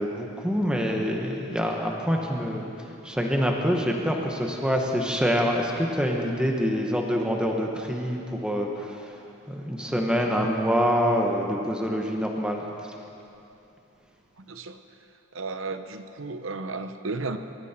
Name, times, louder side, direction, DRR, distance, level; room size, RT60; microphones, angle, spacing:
voice 1, 0.0-2.7 3.0-9.1 9.5-12.7, equal, 5° right, 0 dB, 1.4 m, -26 dB
voice 2, 14.4-14.8 15.3-17.4, right 3 dB, 65° right, 9 dB, 0.8 m, -33 dB
23.0 x 13.5 x 4.5 m, 2.8 s
head